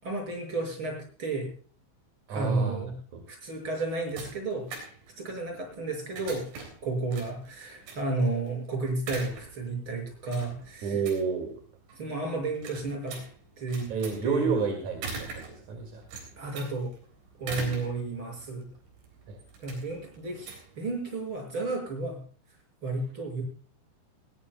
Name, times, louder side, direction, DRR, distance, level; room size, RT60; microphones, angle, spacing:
voice 1, 0.0-1.5 2.3-2.9 3.3-4.7 5.2-6.5 6.8-10.9 12.0-13.2 13.6-13.9 14.2-14.5 16.4-16.9 17.4-18.7 19.6-20.5 20.8-22.2 22.8-23.4, right 3 dB, 25° right, 1 dB, 6.2 m, -32 dB
voice 2, 2.3-2.8 3.1-3.2 10.8-11.5 13.9-16.0 19.3-19.4, right 5 dB, 50° right, 3 dB, 2.6 m, -30 dB
sound 1, 3.5-21.4, right 4 dB, 85° right, 6.2 m, -44 dB
20.0 x 18.5 x 2.2 m, 0.42 s
omnidirectional pair, 5.5 m